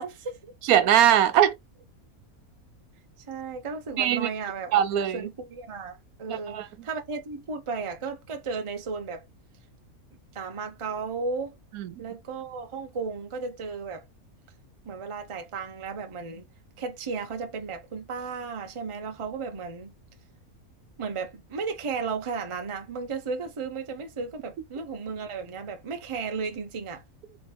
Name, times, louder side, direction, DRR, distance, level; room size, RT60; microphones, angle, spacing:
voice 1, 0.0-0.5 3.3-4.8 5.1-9.2 10.3-11.5 12.0-14.0 14.8-16.4 16.8-19.9 21.0-27.0, right 4 dB, 30° right, 0.6 m, -34 dB
voice 2, 0.6-1.5 4.0-4.3 4.7-5.2 6.3-6.7 11.8-11.9, right 10 dB, 80° right, 1.1 m, -21 dB
4.0 x 3.2 x 3.4 m
omnidirectional pair, 1.5 m